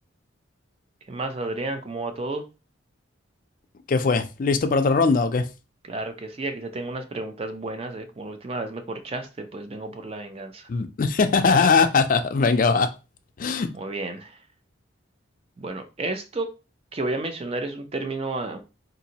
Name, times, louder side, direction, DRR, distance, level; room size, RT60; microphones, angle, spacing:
voice 1, 1.1-2.4 5.8-10.7 13.7-14.4 15.6-16.5 16.9-18.6, right 2 dB, 30° right, 7 dB, 0.4 m, -32 dB
voice 2, 3.9-5.4 10.7-12.9 13.4-13.7, left 4 dB, 45° left, 8 dB, 0.4 m, -20 dB
3.9 x 2.6 x 2.8 m, 0.30 s
head